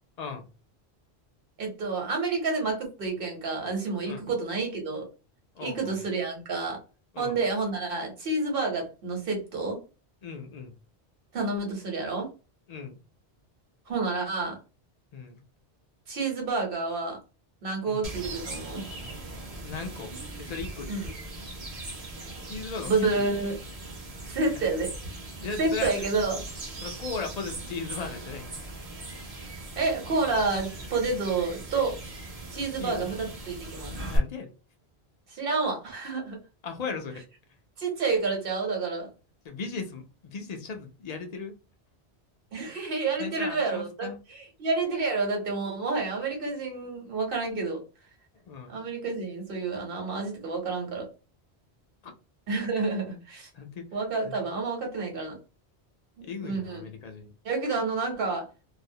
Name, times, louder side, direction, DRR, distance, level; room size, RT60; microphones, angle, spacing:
voice 1, 0.2-0.5 4.1-4.3 5.6-6.0 7.1-7.4 10.2-10.8 12.7-13.0 15.1-15.4 17.9-18.0 19.6-20.1 20.4-21.0 22.5-23.5 24.5-24.6 25.4-25.9 26.8-28.5 32.8-33.2 34.1-34.5 36.6-37.2 39.4-41.5 43.2-44.2 48.5-48.8 53.5-53.9 54.2-54.4 56.3-57.3, left 5 dB, 55° left, 4 dB, 0.5 m, -37 dB
voice 2, 1.6-5.1 5.6-6.8 7.2-9.8 11.3-12.3 13.9-14.6 16.1-17.2 17.6-18.8 20.9-21.1 22.8-23.6 24.2-24.9 25.6-26.4 29.8-32.0 32.5-33.9 35.3-36.4 37.8-39.1 42.5-47.8 48.7-51.1 52.5-53.5 53.9-55.4 56.2-56.8 57.4-58.5, right 3 dB, 60° right, 2 dB, 1.1 m, -29 dB
sound 1, 18.0-34.2, right 2 dB, 40° right, 0.7 m, -39 dB
2.4 x 2.0 x 2.6 m, 0.32 s
omnidirectional pair, 1.1 m